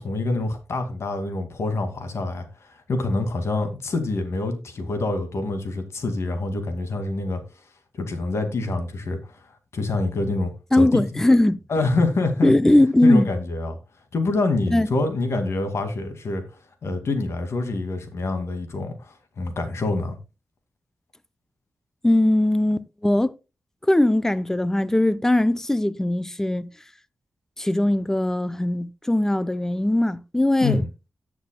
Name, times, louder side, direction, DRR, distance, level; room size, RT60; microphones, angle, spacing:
voice 1, 0.0-7.4 8.0-11.0 11.7-12.5 13.0-13.8 14.1-16.4 16.8-20.2 30.6-30.9, left 2 dB, 65° left, 2.2 m, -26 dB
voice 2, 10.7-11.6 12.4-13.3 14.7-14.9 22.0-23.3 23.8-26.7 27.6-30.8, left 1 dB, 10° left, 0.6 m, -20 dB
18.0 x 6.1 x 2.2 m
wide cardioid pair, 150°, 5 cm